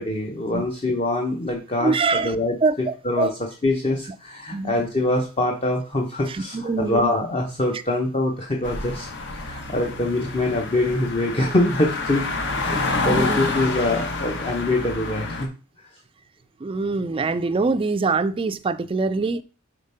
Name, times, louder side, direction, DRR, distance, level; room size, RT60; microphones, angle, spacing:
voice 1, 0.0-9.1 9.4-12.2 12.6-15.5, left 2 dB, 30° left, 0.8 m, -24 dB
voice 2, 1.8-2.4 2.6-3.3 4.5-4.8 6.5-7.0 9.7-9.8 12.7-13.4 16.6-19.4, right 3 dB, 25° right, 0.4 m, -24 dB
sound 1, 8.6-15.5, left 3 dB, 60° left, 1.1 m, -28 dB
5.0 x 4.3 x 5.4 m
head